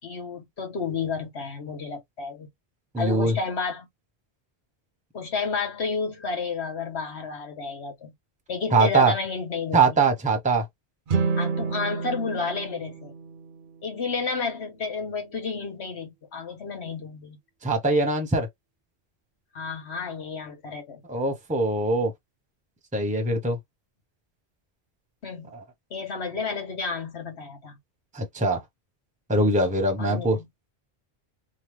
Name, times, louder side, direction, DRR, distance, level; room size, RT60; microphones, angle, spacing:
voice 1, 0.0-2.5 3.0-3.9 5.1-8.1 8.5-10.0 11.4-13.1 13.8-17.4 19.5-21.0 25.2-25.5 25.9-27.8 30.0-30.5, left 4 dB, 85° left, 1.5 m, -31 dB
voice 2, 2.9-3.4 8.7-9.1 9.7-10.6 17.6-18.5 21.1-22.1 22.9-23.6 28.1-28.6 29.3-30.4, right 3 dB, 10° right, 0.7 m, -22 dB
sound 1, 11.1-14.3, right 5 dB, 60° right, 0.7 m, -30 dB
3.1 x 2.2 x 3.3 m
omnidirectional pair, 1.1 m